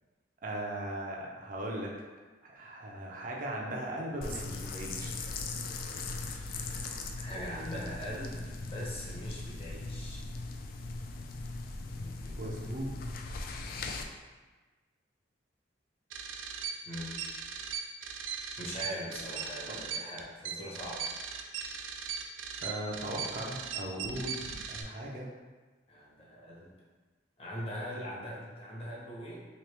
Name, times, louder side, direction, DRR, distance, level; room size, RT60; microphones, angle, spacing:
voice 1, 0.4-1.9 2.4-5.1 12.4-12.9 19.7-19.8 22.6-25.3, right 1 dB, 45° right, -2 dB, 0.6 m, -38 dB
sound 1, 4.2-14.0, left 3 dB, 50° left, 0.3 m, -39 dB
voice 2, 5.9-6.8 7.2-10.2 11.8-12.8 16.9-17.2 18.6-21.1 25.9-26.7 27.4-29.5, equal, 30° left, -4 dB, 0.8 m, -42 dB
sound 2, 16.1-24.8, right 6 dB, 85° right, 0.4 m, -38 dB
3.1 x 2.9 x 3.3 m, 1.3 s
head